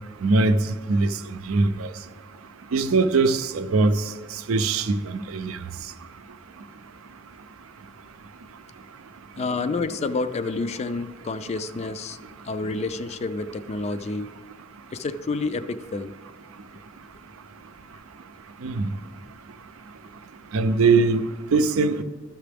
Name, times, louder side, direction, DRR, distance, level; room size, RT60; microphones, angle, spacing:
voice 1, 0.2-0.6 0.9-1.1 1.5-1.9 2.7-4.0 4.5-5.6 18.6-18.9 20.5-21.2 21.5-22.0, right 3 dB, 85° right, 11 dB, 0.5 m, -21 dB
voice 2, 9.4-12.2 12.4-14.3 14.9-16.1, left 3 dB, 30° left, 12 dB, 0.3 m, -29 dB
13.0 x 5.8 x 3.4 m, 1.4 s
head